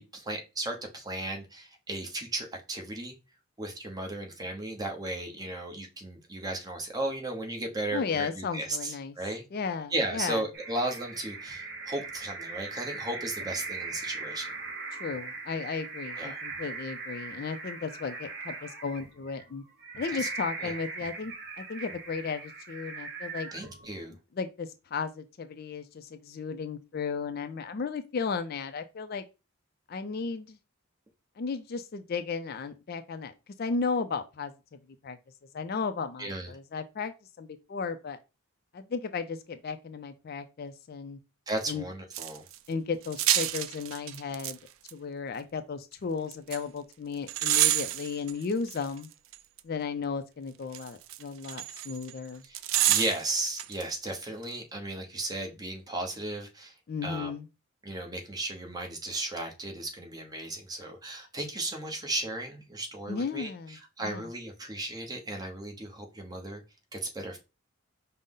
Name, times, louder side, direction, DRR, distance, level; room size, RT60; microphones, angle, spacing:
voice 1, 0.0-3.1 3.6-9.4 9.9-14.5 16.2-16.4 20.1-20.3 20.6-20.7 23.5-24.1 36.2-36.5 41.5-42.4 52.5-52.6 52.9-56.7 57.0-57.3 57.8-66.6 66.9-67.4, right 2 dB, 20° right, 0.8 m, -35 dB
voice 2, 7.9-9.1 9.5-10.4 14.9-19.6 20.0-23.5 24.1-29.2 29.9-30.6 31.4-35.2 35.5-38.2 38.7-41.2 41.7-41.8 42.7-44.6 44.9-49.1 49.6-52.4 56.9-57.5 63.1-64.3, left 5 dB, 45° left, 0.4 m, -35 dB
sound 1, 10.5-24.1, right 3 dB, 50° right, 0.8 m, -40 dB
sound 2, 42.1-42.6 43.0-44.5 44.9-45.0 46.3-46.6 47.3-49.6 50.7-52.1 52.5-53.8 54.1-54.2, right 13 dB, 70° right, 0.3 m, -28 dB
5.3 x 2.0 x 3.7 m
head